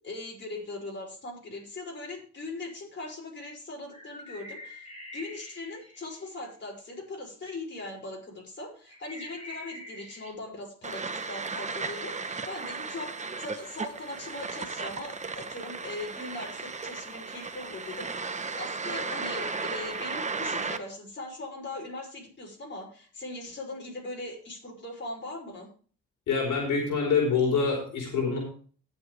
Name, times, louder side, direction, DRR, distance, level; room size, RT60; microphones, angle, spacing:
voice 1, 0.0-13.1 13.4-25.7, left 2 dB, 40° left, 0 dB, 5.7 m, -40 dB
sound 1, 3.9-6.3 8.8-10.3, left 1 dB, 20° left, 5.4 m, -45 dB
sound 2, 10.8-20.8, right 4 dB, 25° right, 1.0 m, -35 dB
voice 2, 26.3-28.4, left 5 dB, 75° left, -1 dB, 4.4 m, -25 dB
18.5 x 7.3 x 3.3 m, 0.42 s
cardioid pair, 90°, 30 cm